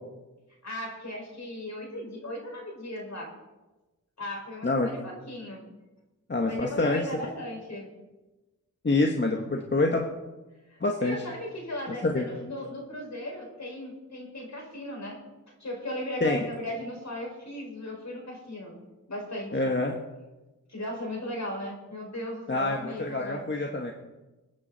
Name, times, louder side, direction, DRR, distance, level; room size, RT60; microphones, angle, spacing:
voice 1, 0.6-3.3 4.2-5.6 6.5-7.9 10.7-15.2 15.6-18.8 19.1-19.7 20.7-23.4, left 1 dB, 55° left, 0 dB, 5.5 m, -37 dB
voice 2, 6.3-7.0 8.8-10.0 10.8-11.2 11.9-12.3 16.2-16.4 19.5-20.0 22.5-23.9, left 2 dB, 35° left, 1 dB, 1.5 m, -26 dB
26.0 x 9.6 x 4.2 m, 1.1 s
wide cardioid pair, 70°, 32 cm